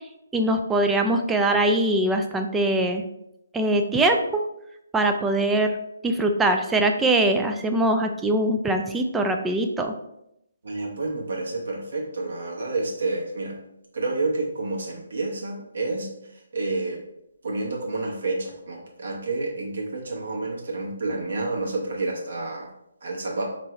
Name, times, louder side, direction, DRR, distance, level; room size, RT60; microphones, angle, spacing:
voice 1, 0.3-3.0 3.5-4.4 4.9-5.8 6.0-9.9, right 1 dB, 5° right, 4 dB, 0.3 m, -22 dB
voice 2, 10.6-13.6 13.9-16.1 16.5-17.0 17.4-22.7 23.0-23.4, right 2 dB, 60° right, -2 dB, 0.9 m, -29 dB
4.5 x 2.6 x 3.1 m, 0.83 s
figure-of-eight pair, 140°, 0 cm